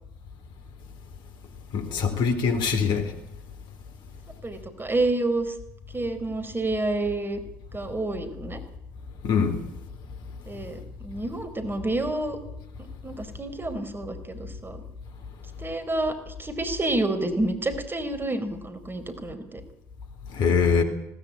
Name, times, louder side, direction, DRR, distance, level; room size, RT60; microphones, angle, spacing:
voice 1, 1.7-3.1 9.2-9.6 20.3-20.8, left 5 dB, 60° left, 4.1 m, -23 dB
voice 2, 4.4-5.5 5.9-7.4 7.7-8.6 10.5-12.4 13.0-14.8 15.6-19.6, right 2 dB, 25° right, 4.4 m, -29 dB
20.5 x 18.5 x 8.8 m
figure-of-eight pair, 55°, 9 cm